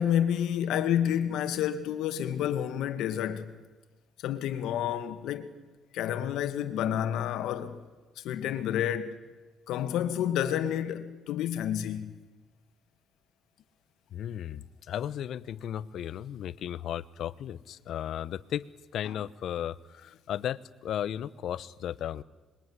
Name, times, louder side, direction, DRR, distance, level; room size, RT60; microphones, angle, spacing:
voice 1, 0.0-3.5 4.2-5.5 5.9-7.8 8.2-9.2 9.7-12.1 19.1-19.2, left 10 dB, 85° left, 2.2 m, -29 dB
voice 2, 14.1-22.2, left 10 dB, 65° left, 1.0 m, -35 dB
26.5 x 22.5 x 9.8 m
cardioid pair, 130°, 0 cm